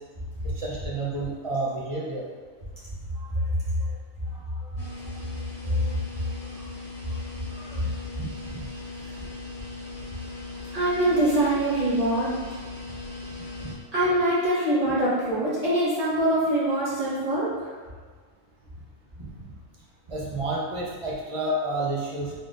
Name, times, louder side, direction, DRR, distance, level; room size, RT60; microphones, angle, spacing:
voice 1, 0.6-2.2 8.2-8.7 13.6-13.7 19.2-19.3 20.1-22.3, right 2 dB, 50° right, -4 dB, 0.4 m, -30 dB
voice 2, 3.1-3.5 4.7-4.8 5.6-6.0 6.4-6.5 7.5-7.8 10.7-12.3 13.9-17.7, right 1 dB, 30° right, -10 dB, 1.3 m, -24 dB
sound 1, 4.8-13.8, left 3 dB, 50° left, 1.7 m, -39 dB
3.8 x 3.6 x 2.5 m, 1.5 s
omnidirectional pair, 1.4 m